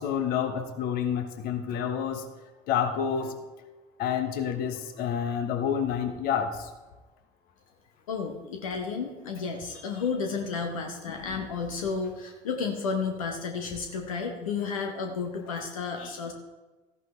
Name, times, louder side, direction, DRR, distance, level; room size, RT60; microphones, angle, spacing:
voice 1, 0.0-2.3 2.7-3.3 4.0-6.7 11.1-11.4 16.0-16.1, left 8 dB, 60° left, 7 dB, 1.2 m, -29 dB
voice 2, 8.1-16.3, left 5 dB, 85° left, 4 dB, 1.0 m, -32 dB
13.5 x 11.0 x 3.2 m, 1.2 s
hypercardioid pair, 65°, 17 cm